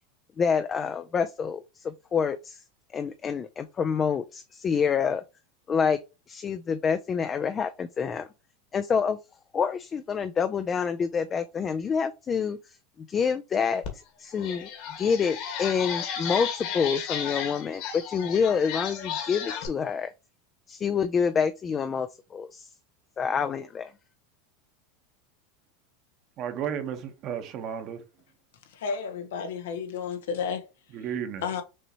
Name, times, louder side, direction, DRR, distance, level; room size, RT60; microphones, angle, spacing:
voice 1, 0.4-2.6 2.9-5.2 5.7-6.0 6.3-8.3 8.7-9.2 9.5-12.8 13.1-14.7 15.0-20.1 20.7-22.7 23.2-23.9, left 6 dB, 25° left, 0.4 m, -27 dB
sound 1, 13.8-13.9 14.3-19.7, left 7 dB, 55° left, 1.8 m, -34 dB
voice 2, 26.4-28.0 30.9-31.5, right 8 dB, 45° right, 1.1 m, -33 dB
voice 3, 28.7-30.7 31.4-31.6, left 6 dB, 85° left, 1.2 m, -32 dB
6.1 x 2.9 x 2.9 m
supercardioid pair, 130°, 0 cm